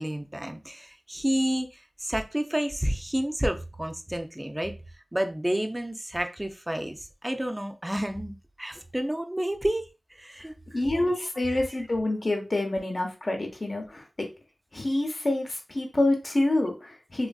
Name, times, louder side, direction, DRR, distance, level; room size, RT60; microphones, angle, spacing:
voice 1, 0.0-4.7 5.1-9.8 10.1-10.8, right 1 dB, 15° right, 6 dB, 0.4 m, -30 dB
voice 2, 10.7-14.0 14.7-17.3, left 2 dB, 50° left, 2 dB, 0.7 m, -27 dB
3.3 x 2.4 x 2.3 m, 0.29 s
wide cardioid pair, 75°, 0 cm